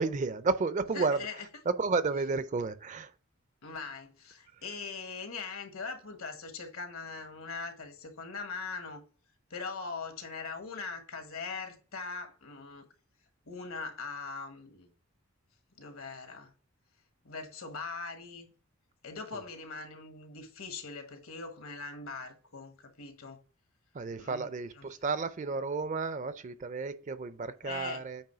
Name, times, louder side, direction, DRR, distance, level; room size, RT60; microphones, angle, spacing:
voice 1, 0.0-1.2 1.7-3.1 23.9-28.2, right 4 dB, 35° right, 0.4 m, -32 dB
voice 2, 0.9-1.5 3.6-9.0 9.5-12.9 13.5-14.9 15.8-16.5 17.2-18.5 19.0-23.4 24.2-24.9 27.6-28.0, left 4 dB, 75° left, 1.5 m, -41 dB
8.9 x 3.1 x 5.6 m
head